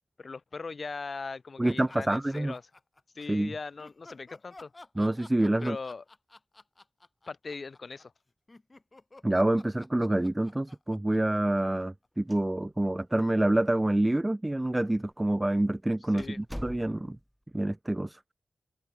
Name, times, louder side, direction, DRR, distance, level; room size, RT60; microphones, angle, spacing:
voice 1, 0.2-2.6 3.1-4.7 5.6-6.0 7.3-8.1 16.1-16.4, left 4 dB, 55° left, 1.4 m, -39 dB
sound 1, 1.6-3.2 3.8-12.1, left 2 dB, 35° left, 3.2 m, -53 dB
voice 2, 1.6-2.5 3.3-3.5 5.0-5.8 9.2-17.2 17.5-18.2, right 1 dB, 20° right, 0.4 m, -27 dB
sound 2, 12.2-12.9 13.2-13.3 14.0-14.1 14.9-15.1 15.5-15.6 16.2-17.3, equal, ahead, 0.9 m, -43 dB
wide cardioid pair, 70°, 0 cm